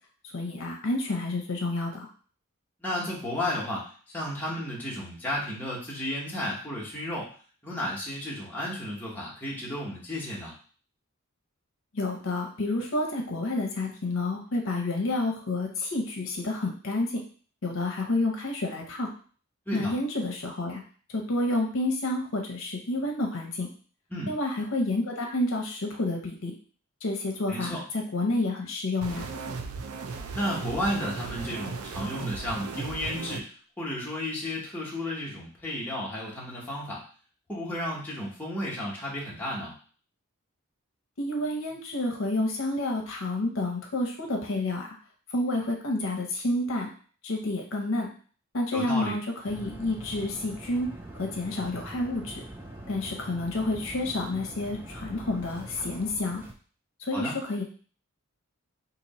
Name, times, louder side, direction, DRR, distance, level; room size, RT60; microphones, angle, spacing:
voice 1, 0.3-2.1 11.9-17.2 17.6-19.1 19.7-20.8 21.1-23.7 24.3-26.5 27.0-29.3 41.2-44.9 45.3-46.9 47.2-48.1 48.5-52.4 52.9-56.4 57.0-57.6, left 2 dB, 65° left, 2 dB, 0.7 m, -29 dB
voice 2, 2.8-7.3 7.6-10.5 19.7-19.9 24.1-24.3 27.5-27.8 30.3-33.5 33.8-37.0 37.5-39.7 48.7-49.2 57.1-57.3, left 1 dB, 10° left, -5 dB, 0.9 m, -33 dB
sound 1, 29.0-33.4, right 4 dB, 85° right, 0.5 m, -36 dB
sound 2, 49.5-56.5, right 1 dB, 10° right, 0.4 m, -43 dB
2.9 x 2.7 x 4.1 m, 0.42 s
head